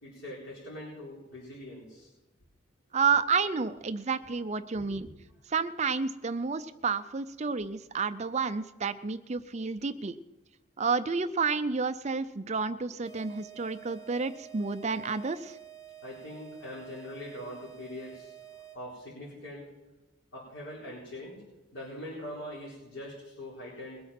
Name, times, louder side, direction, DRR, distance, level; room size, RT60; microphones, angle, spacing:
voice 1, 0.0-2.1 4.7-5.0 16.0-18.3 18.7-19.7 20.3-21.4 21.7-24.0, left 1 dB, 80° left, -7 dB, 4.4 m, -42 dB
voice 2, 2.9-5.1 5.5-10.2 10.8-15.6, right 5 dB, 35° right, 12 dB, 0.5 m, -30 dB
sound 1, 13.0-19.0, right 11 dB, 25° left, 2.5 m, -49 dB
21.0 x 8.6 x 5.9 m, 1.0 s
head